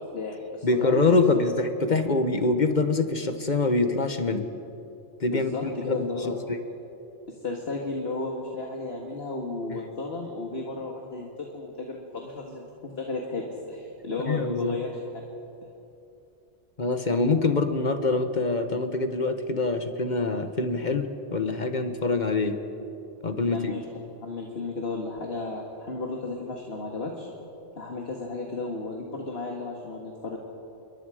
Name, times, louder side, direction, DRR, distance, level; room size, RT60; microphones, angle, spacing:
voice 1, 0.0-1.0 1.3-1.5 5.3-6.4 7.3-15.0 23.5-23.8 24.2-27.3 27.8-30.4, left 3 dB, 60° left, 0 dB, 2.1 m, -34 dB
voice 2, 0.6-4.5 5.2-6.6 14.2-14.8 16.8-22.6 23.2-23.7, left 3 dB, 40° left, 8 dB, 1.4 m, -25 dB
27.5 x 23.0 x 5.0 m, 2.8 s
omnidirectional pair, 1.2 m